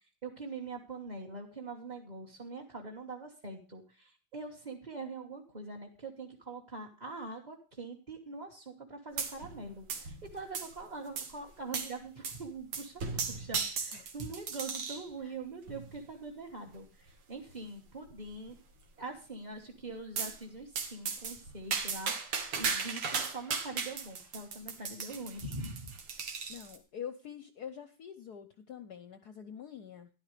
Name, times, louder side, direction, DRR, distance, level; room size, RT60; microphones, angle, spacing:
voice 1, 0.2-18.5 19.0-25.9, right 3 dB, 25° right, -2 dB, 1.2 m, -43 dB
sound 1, 9.2-9.6 9.9-10.8 11.2-11.3 11.7-11.9 12.2-12.4 12.7-15.1 15.7-16.0 16.7-16.8 17.1-17.2 17.5-17.6 18.1-18.5 20.2-20.4 20.8-26.8, right 5 dB, 80° right, 2.4 m, -36 dB
voice 2, 26.5-30.1, left 8 dB, 65° left, 11 dB, 1.0 m, -45 dB
12.5 x 11.0 x 3.2 m, 0.35 s
omnidirectional pair, 2.4 m